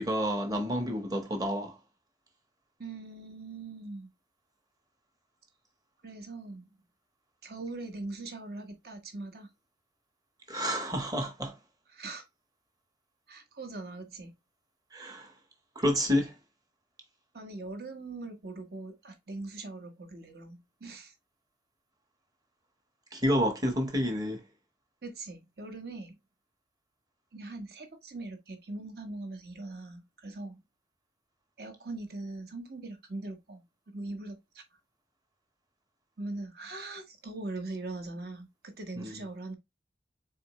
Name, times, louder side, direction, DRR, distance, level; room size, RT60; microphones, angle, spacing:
voice 1, 0.0-1.7 10.5-11.5 14.9-15.3 15.7-16.3 23.1-24.4 39.0-39.1, equal, 20° right, 1.0 m, -29 dB
voice 2, 2.8-4.1 6.0-6.7 7.4-9.5 11.9-12.2 13.3-14.3 17.3-21.1 25.0-26.2 27.3-30.6 31.6-33.6 33.9-34.6 36.2-39.5, right 2 dB, 60° right, 1.1 m, -41 dB
4.2 x 3.7 x 3.0 m
head